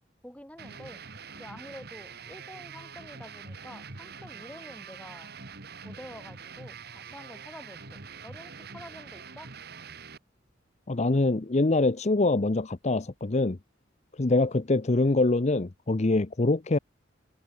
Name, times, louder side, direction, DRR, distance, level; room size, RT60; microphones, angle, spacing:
voice 1, 0.2-1.0 1.4-5.3 5.8-9.5, left 1 dB, 5° left, 6.7 m, -48 dB
sound 1, 0.6-10.2, right 5 dB, 55° right, 2.2 m, -44 dB
voice 2, 10.9-13.6 14.2-16.8, left 2 dB, 35° left, 0.7 m, -24 dB
head